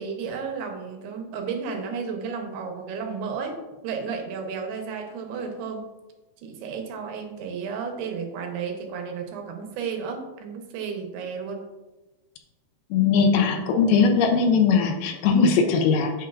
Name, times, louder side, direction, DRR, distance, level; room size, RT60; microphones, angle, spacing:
voice 1, 0.0-3.6 3.8-5.8 6.4-11.6, right 5 dB, 90° right, 3 dB, 2.9 m, -33 dB
voice 2, 12.9-16.1, left 5 dB, 85° left, 4 dB, 2.6 m, -20 dB
8.8 x 6.2 x 2.4 m, 1.1 s
omnidirectional pair, 4.5 m